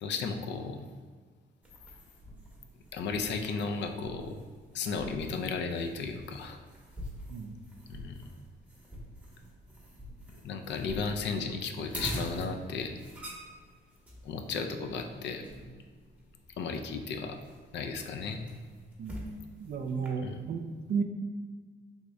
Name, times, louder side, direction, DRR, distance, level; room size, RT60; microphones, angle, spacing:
voice 1, 0.0-0.8 2.9-4.4 4.7-6.6 7.9-8.2 10.3-13.0 14.2-15.5 16.6-17.4 17.7-18.4 20.2-20.4, left 4 dB, 65° left, 5 dB, 0.4 m, -34 dB
sound 1, 1.6-20.1, right 1 dB, 5° right, 0.8 m, -46 dB
voice 2, 7.3-7.6 19.0-21.0, right 5 dB, 50° right, 5 dB, 0.4 m, -34 dB
3.4 x 2.6 x 3.1 m, 1.5 s
cardioid pair, 90°, 20 cm